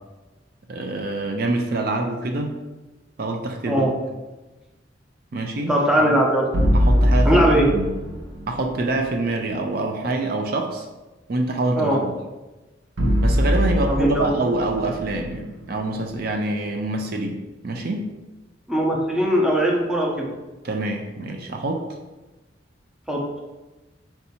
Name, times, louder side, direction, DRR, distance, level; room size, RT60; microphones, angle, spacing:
voice 1, 0.7-2.5 3.2-3.9 5.3-5.7 6.1-6.3 6.7-7.9 8.5-10.9 11.3-12.1 13.2-18.1 20.6-21.8, right 2 dB, 55° right, 3 dB, 0.4 m, -26 dB
voice 2, 5.7-6.5 7.2-7.7 11.7-12.0 13.9-14.3 18.7-20.3 23.1-23.2, equal, 5° right, -3 dB, 0.7 m, -20 dB
sound 1, 6.5-8.7 13.0-16.2, equal, 85° right, 0.7 m, -22 dB
4.5 x 2.7 x 4.2 m, 1.1 s
head